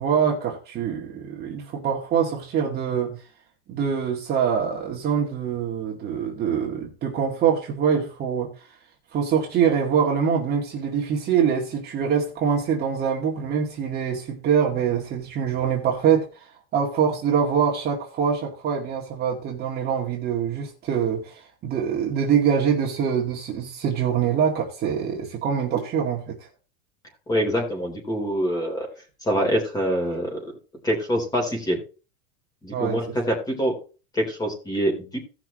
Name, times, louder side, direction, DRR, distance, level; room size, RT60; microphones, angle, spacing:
voice 1, 0.0-3.2 3.7-8.5 9.1-26.5 32.7-33.0, right 7 dB, 30° right, -1 dB, 2.1 m, -24 dB
voice 2, 27.3-28.9 29.2-30.4 30.8-31.8 32.6-33.7 34.1-35.2, equal, 10° left, 2 dB, 3.5 m, -25 dB
17.5 x 6.0 x 3.1 m, 0.33 s
supercardioid pair, 155°, 33 cm